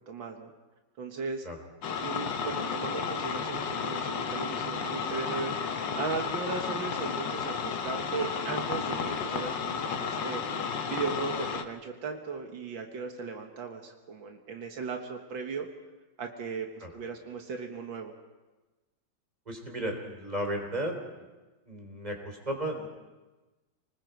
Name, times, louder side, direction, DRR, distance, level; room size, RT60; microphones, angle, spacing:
voice 1, 0.1-0.5 1.0-1.5 2.0-5.5 6.0-10.5 10.9-15.7 16.2-16.7 16.9-18.1, right 5 dB, 80° right, 3 dB, 2.2 m, -37 dB
sound 1, 1.8-11.6, left 6 dB, 70° left, 1.7 m, -32 dB
voice 2, 19.5-20.9 21.7-22.9, right 1 dB, 20° right, 3 dB, 3.4 m, -34 dB
29.5 x 20.0 x 4.6 m, 1.2 s
omnidirectional pair, 2.1 m